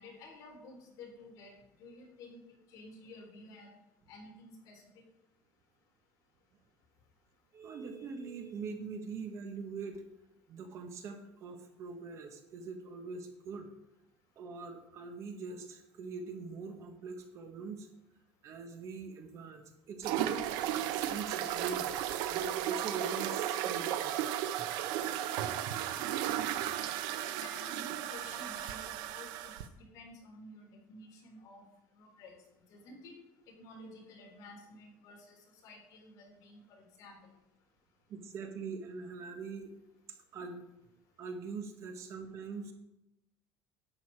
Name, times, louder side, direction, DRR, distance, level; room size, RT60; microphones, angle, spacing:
voice 1, 0.0-2.4 2.7-3.7 4.1-4.8 27.4-31.7 31.9-32.4 32.7-33.2 33.5-37.3, left 2 dB, 55° left, 0 dB, 3.5 m, -52 dB
voice 2, 7.5-10.0 10.5-13.7 14.4-17.9 18.4-20.4 21.1-21.9 22.3-24.2 38.1-39.7 40.3-40.6 41.2-42.7, right 4 dB, 45° right, 6 dB, 1.4 m, -43 dB
sound 1, 20.0-29.7, right 11 dB, 75° right, 0.8 m, -34 dB
11.0 x 8.2 x 4.7 m, 0.89 s
cardioid pair, 160°, 7 cm